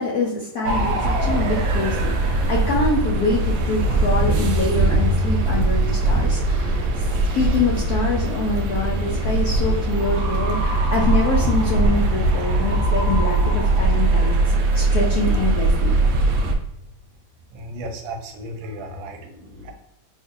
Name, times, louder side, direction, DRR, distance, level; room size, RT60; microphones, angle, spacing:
voice 1, 0.0-7.1 7.3-16.0, left 3 dB, 70° left, -3 dB, 0.9 m, -25 dB
sound 1, 0.6-16.5, right 2 dB, 70° right, 1.0 m, -20 dB
voice 2, 17.5-19.7, right 1 dB, 90° right, 4 dB, 1.4 m, -35 dB
3.8 x 2.6 x 2.5 m, 0.87 s
omnidirectional pair, 2.1 m